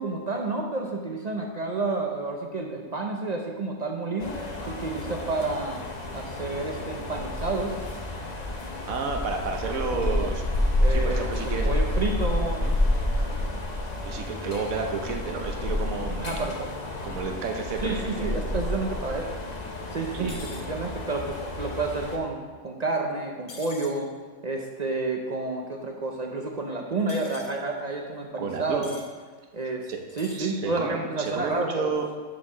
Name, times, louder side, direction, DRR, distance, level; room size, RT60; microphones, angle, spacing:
voice 1, 0.0-4.4 4.7-5.8 6.1-7.8 9.7-10.3 10.8-12.7 16.2-16.7 17.8-19.4 19.9-24.1 24.4-29.0 29.5-29.9 30.2-31.9, right 3 dB, 45° right, 1 dB, 0.6 m, -30 dB
sound 1, 4.2-22.2, left 1 dB, 35° left, 0.8 m, -29 dB
voice 2, 8.9-10.4 10.9-11.7 12.6-12.8 14.0-16.2 17.0-18.4 20.1-20.4 28.4-28.8 29.9-30.0 30.3-32.1, right 4 dB, 75° right, 3 dB, 1.2 m, -31 dB
sound 2, 20.3-20.7 23.5-24.0 27.1-27.5 28.8-29.1 30.1-30.5, left 3 dB, 60° left, 1.1 m, -44 dB
7.1 x 4.5 x 6.1 m, 1.4 s
omnidirectional pair, 1.5 m